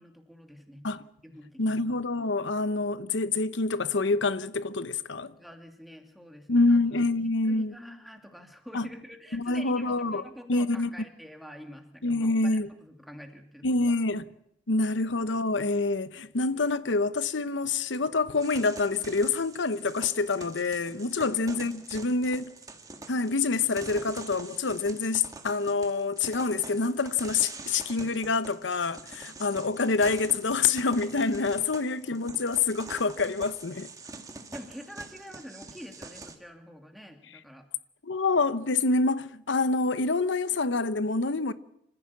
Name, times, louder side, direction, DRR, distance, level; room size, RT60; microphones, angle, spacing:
voice 1, 0.0-0.9 1.2-1.8 5.2-6.8 7.4-13.9 22.3-22.4 34.5-37.7, equal, ahead, 2.7 m, -46 dB
voice 2, 1.6-5.3 6.5-7.7 8.7-8.9 9.3-10.2 10.5-10.9 12.0-12.7 13.6-14.2 14.7-22.5 23.1-33.9 38.0-41.5, left 3 dB, 80° left, 0.9 m, -27 dB
sound 1, 18.4-36.4, right 3 dB, 20° right, 1.7 m, -45 dB
26.0 x 15.0 x 8.5 m
head